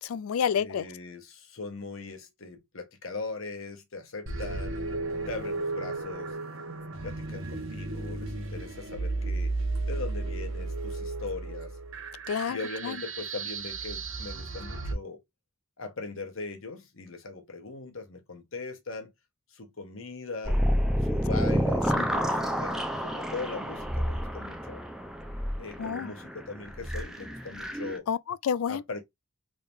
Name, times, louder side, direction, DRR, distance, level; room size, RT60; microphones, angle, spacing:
voice 1, 0.0-0.9 12.3-12.6 12.8-13.0 22.0-22.1 25.8-26.1 28.1-28.8, left 7 dB, 90° left, 0.4 m, -29 dB
voice 2, 0.5-4.9 5.3-6.3 7.0-9.6 9.8-11.8 12.5-15.2 15.8-19.1 19.5-20.6 21.0-24.8 25.6-28.1 28.7-29.0, left 3 dB, 75° left, 1.2 m, -40 dB
sound 1, 4.3-14.9, right 3 dB, 65° right, 1.1 m, -34 dB
sound 2, 20.4-28.0, equal, 5° right, 0.6 m, -29 dB
3.8 x 3.5 x 2.6 m
head